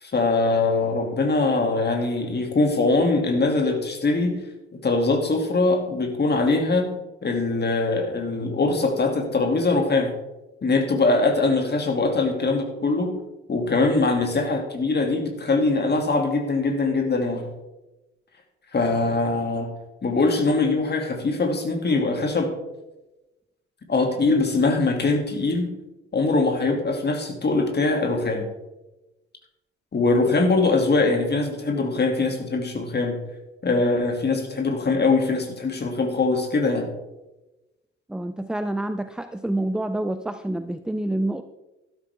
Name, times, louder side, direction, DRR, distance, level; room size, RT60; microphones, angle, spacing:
voice 1, 0.0-4.4 4.8-6.9 7.2-10.1 10.6-13.1 13.5-17.5 18.7-19.7 20.0-22.5 23.9-25.7 26.1-28.5 29.9-33.2 33.6-36.9, left 3 dB, 30° left, 3 dB, 2.6 m, -22 dB
voice 2, 38.1-41.4, right 1 dB, ahead, 10 dB, 0.6 m, -27 dB
12.5 x 12.0 x 3.6 m, 1.0 s
figure-of-eight pair, 50°, 34 cm